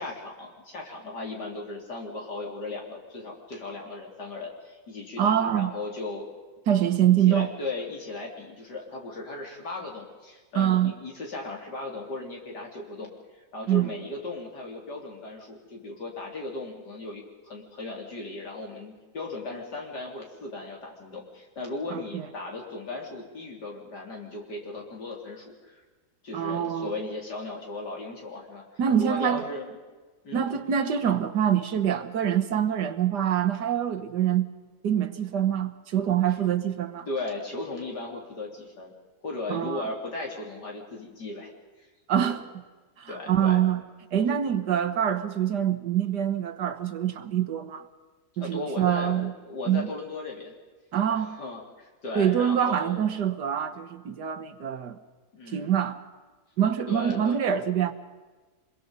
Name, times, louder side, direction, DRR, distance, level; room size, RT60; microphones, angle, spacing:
voice 1, 0.0-6.3 7.3-25.8 26.2-28.7 29.0-29.8 30.2-30.4 37.1-38.9 39.2-41.5 41.8-41.9 42.3-42.4 43.1-43.6 48.4-49.1 49.4-50.5 51.1-53.1 55.3-55.7 56.9-57.4, left 2 dB, 85° left, 0 dB, 4.3 m, -37 dB
voice 2, 5.2-5.7 6.7-7.5 10.6-10.9 13.7-13.9 21.9-22.3 26.3-26.9 28.8-29.5 30.3-34.5 34.8-37.1 39.5-39.9 42.1-42.4 43.0-43.8 44.1-47.9 48.4-49.3 49.7-49.9 50.9-51.4 52.2-55.0 55.5-56.0 56.6-57.9, right 9 dB, 90° right, 9 dB, 1.9 m, -25 dB
25.5 x 21.5 x 5.5 m, 1.3 s
omnidirectional pair, 1.7 m